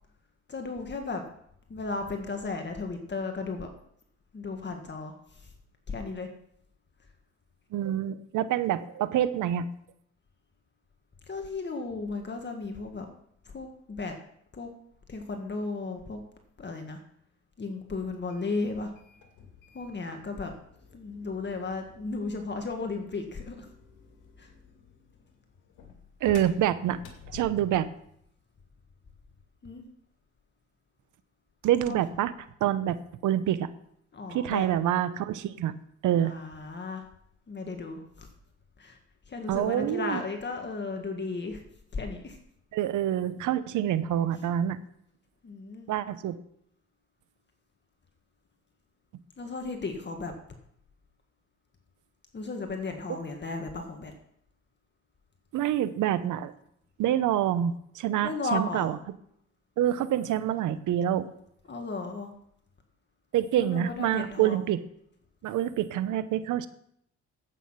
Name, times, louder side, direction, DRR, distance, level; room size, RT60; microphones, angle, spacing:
voice 1, 0.5-1.2 1.7-3.7 4.3-5.5 5.9-6.3 11.3-13.1 13.5-14.1 14.5-14.7 15.1-16.2 16.6-17.0 17.6-18.9 19.7-20.5 20.9-23.7 24.4-24.5 29.6-29.8 31.9-32.0 34.1-34.7 36.2-37.1 37.5-38.3 38.8-39.0 39.3-41.6 41.9-42.4 45.4-45.9 49.4-50.3 52.3-54.1 58.2-59.0 61.7-62.3 63.6-64.7, left 3 dB, 35° left, 4 dB, 1.8 m, -35 dB
voice 2, 7.7-9.7 26.2-27.0 27.3-27.9 31.6-32.3 32.6-33.0 33.2-33.7 34.3-35.7 36.0-36.3 39.5-40.2 42.7-44.8 45.9-46.3 55.5-56.5 57.0-58.9 59.8-61.3 63.3-64.8 65.4-66.7, right 11 dB, 80° right, 14 dB, 0.9 m, -26 dB
sound 1, 18.1-28.0, left 6 dB, 85° left, 2.4 m, -51 dB
11.0 x 8.5 x 5.7 m, 0.70 s
cardioid pair, 90°, 30 cm